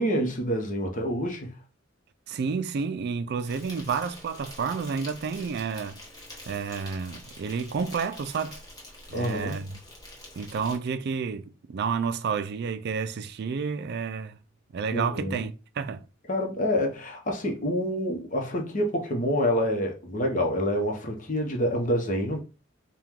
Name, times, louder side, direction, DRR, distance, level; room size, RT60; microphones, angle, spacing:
voice 1, 0.0-1.6 9.1-9.6 14.9-15.4 16.3-22.4, equal, 40° left, 0.9 m, -27 dB
voice 2, 2.3-6.0 6.5-8.6 9.1-9.8 10.4-14.4 14.7-16.0, right 5 dB, 55° right, 0.3 m, -30 dB
Insect, 3.4-10.8, left 1 dB, 20° left, 1.3 m, -46 dB
4.6 x 2.3 x 3.6 m
head